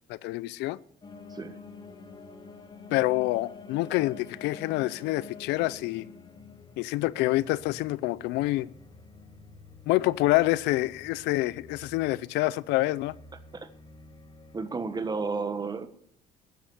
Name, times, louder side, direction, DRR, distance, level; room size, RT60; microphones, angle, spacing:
voice 1, 0.1-0.8 2.9-6.1 6.8-8.7 9.9-13.1, left 18 dB, 90° left, 0.5 m, -27 dB
sound 1, 1.0-15.2, left 4 dB, 25° left, 1.6 m, -49 dB
voice 2, 14.5-15.9, right 4 dB, 25° right, 1.4 m, -32 dB
10.0 x 10.0 x 9.7 m
cardioid pair, 110°, 17 cm